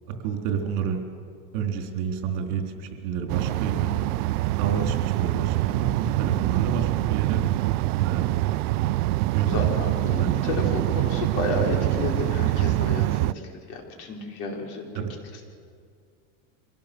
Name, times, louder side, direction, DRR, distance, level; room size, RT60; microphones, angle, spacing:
voice 1, 0.2-1.0 1.5-4.0 4.6-7.5 8.0-8.3 9.3-9.7 10.2-10.6 14.9-15.1, right 6 dB, 55° right, 3 dB, 3.8 m, -29 dB
sound 1, 3.3-13.3, right 17 dB, 90° right, 0.6 m, -25 dB
voice 2, 9.5-13.3 13.7-14.9, left 3 dB, 55° left, 0 dB, 4.7 m, -31 dB
25.0 x 17.5 x 7.0 m, 2.3 s
supercardioid pair, 160°, 43 cm